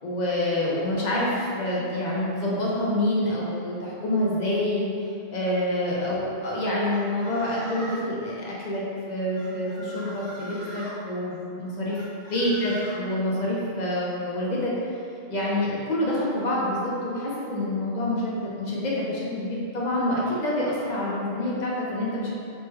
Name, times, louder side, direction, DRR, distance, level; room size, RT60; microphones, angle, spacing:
voice 1, 0.0-4.9 5.3-12.0 12.3-14.7 15.3-22.3, left 1 dB, 50° left, -5 dB, 0.6 m, -27 dB
sound 1, 6.8-8.1 9.3-11.0 11.9-13.0, equal, 60° right, 1.3 m, -41 dB
3.2 x 2.1 x 3.2 m, 2.6 s
omnidirectional pair, 1.1 m